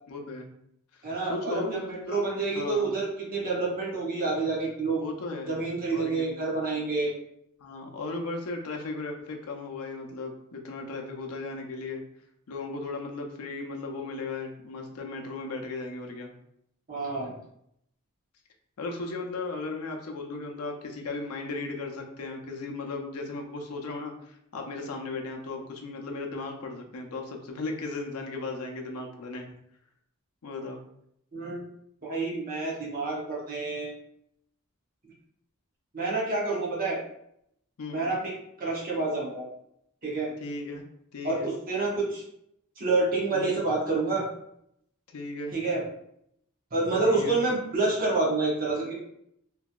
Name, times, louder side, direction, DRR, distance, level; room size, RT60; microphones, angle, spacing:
voice 1, 0.1-0.5 1.2-2.3 2.5-2.9 5.0-5.5 5.9-6.3 7.6-12.0 12.5-16.3 18.8-29.5 30.4-30.8 37.8-38.0 40.4-40.9 41.1-41.5 43.3-43.5 45.1-45.6 47.0-47.4, left 3 dB, 90° left, 2 dB, 0.5 m, -36 dB
voice 2, 1.0-5.0 5.5-7.1 16.9-17.3 31.3-31.6 32.0-33.9 35.9-37.0 37.9-38.3 38.6-39.5 40.0-40.3 41.2-42.2 42.8-44.3 45.5-45.8 46.7-48.9, right 3 dB, 40° right, -4 dB, 0.8 m, -28 dB
2.9 x 2.6 x 2.3 m, 0.74 s
head